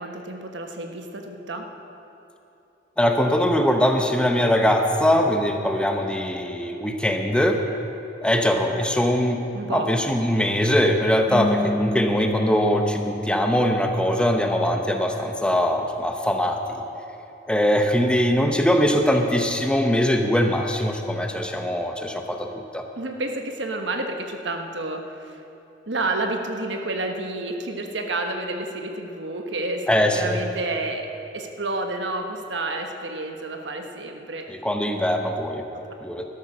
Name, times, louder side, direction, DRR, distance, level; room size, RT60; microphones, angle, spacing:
voice 1, 0.0-1.7 9.5-9.9 23.0-25.4 25.9-31.1 31.3-34.4 35.7-35.8, right 2 dB, 70° right, 4 dB, 1.2 m, -30 dB
voice 2, 3.0-7.6 8.2-9.4 9.7-16.8 17.5-22.5 22.7-22.9 29.9-30.4 34.5-35.6 36.0-36.3, equal, 5° left, 4 dB, 0.8 m, -21 dB
sound 1, 11.3-14.6, left 1 dB, 20° right, 2.6 m, -30 dB
12.5 x 12.5 x 6.2 m, 2.9 s
head